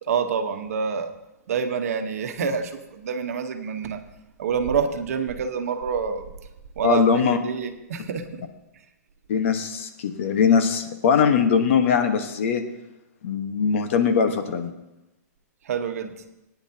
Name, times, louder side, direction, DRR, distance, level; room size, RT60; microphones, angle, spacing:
voice 1, 0.0-1.1 1.5-4.0 4.4-6.3 6.8-8.4 15.6-16.1, right 6 dB, 60° right, 7 dB, 1.2 m, -27 dB
voice 2, 6.8-7.4 9.3-12.6 13.2-14.7, left 6 dB, 45° left, 6 dB, 1.3 m, -21 dB
18.5 x 9.9 x 2.9 m, 0.93 s
hypercardioid pair, 170°, 9 cm